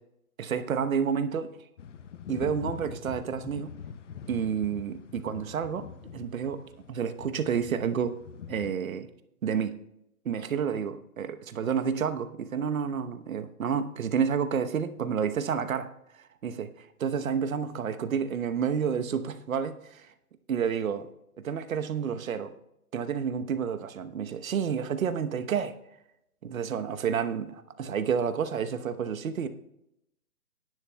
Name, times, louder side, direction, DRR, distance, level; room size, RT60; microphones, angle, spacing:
voice 1, 0.4-1.5 2.3-3.8 4.3-5.9 6.1-8.2 8.5-9.1 9.4-9.8 10.2-15.9 16.4-16.7 17.0-20.1 20.5-21.1 21.4-22.5 22.9-25.7 26.4-29.5, right 7 dB, 60° right, 10 dB, 1.0 m, -30 dB
sound 1, 1.8-8.7, left 7 dB, 55° left, 0.8 m, -43 dB
18.5 x 11.0 x 2.3 m, 0.81 s
hypercardioid pair, 150°, 45 cm